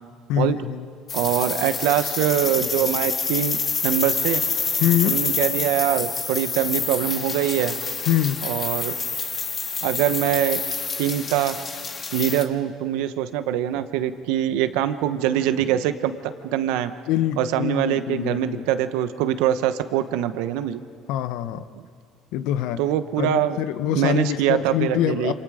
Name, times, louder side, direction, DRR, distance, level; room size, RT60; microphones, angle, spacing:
voice 1, 0.3-0.8 4.8-5.2 8.1-8.4 17.1-18.6 21.1-21.7 22.3-22.8 23.2-25.3, left 11 dB, 75° left, 12 dB, 0.9 m, -24 dB
sound 1, 1.1-12.4, left 5 dB, 30° left, 1.8 m, -27 dB
voice 2, 1.1-4.4 5.0-7.7 8.4-8.9 9.8-10.6 11.0-11.5 12.1-16.9 17.4-20.8 22.8-23.6 23.9-25.3, right 11 dB, 85° right, 10 dB, 1.1 m, -23 dB
28.0 x 27.5 x 5.1 m, 2.2 s
cardioid pair, 130°, 0 cm